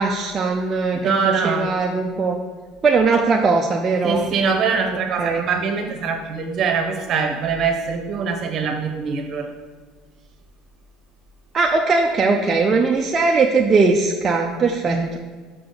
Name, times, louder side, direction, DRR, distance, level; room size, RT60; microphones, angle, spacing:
voice 1, 0.0-2.4 2.8-4.3 5.2-5.5 11.5-15.2, right 4 dB, 35° right, 1 dB, 0.5 m, -19 dB
voice 2, 1.0-1.7 4.0-9.5 14.8-15.1, right 5 dB, 50° right, 5 dB, 1.0 m, -23 dB
5.7 x 5.1 x 3.9 m, 1.5 s
supercardioid pair, 85°, 0 cm